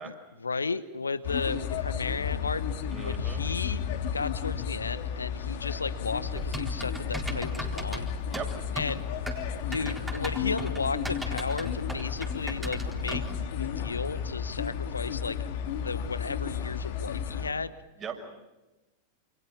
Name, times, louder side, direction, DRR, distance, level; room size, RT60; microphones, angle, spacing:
voice 1, 0.0-2.6 3.0-3.8 4.1-8.1 8.7-9.0 9.7-13.2 13.5-15.4 15.8-17.7, left 4 dB, 75° left, 15 dB, 1.1 m, -34 dB
sound 1, 1.2-17.5, left 8 dB, 50° left, 2.8 m, -33 dB
voice 2, 2.9-3.4 8.3-8.5 18.0-18.2, right 7 dB, 25° right, 4 dB, 6.0 m, -38 dB
Typing, 6.3-13.4, right 1 dB, 5° right, 4.1 m, -38 dB
28.5 x 28.0 x 5.7 m, 1.0 s
figure-of-eight pair, 90°, 0 cm